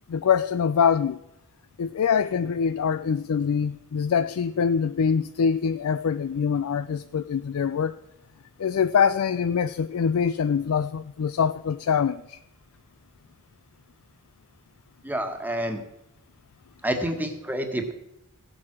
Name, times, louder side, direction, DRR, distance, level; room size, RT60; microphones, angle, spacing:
voice 1, 0.1-1.2 1.8-8.0 8.6-12.4, left 6 dB, 70° left, 0.4 m, -24 dB
voice 2, 15.0-15.8 16.8-17.9, right 1 dB, 10° right, 1.5 m, -28 dB
16.0 x 7.7 x 5.9 m
head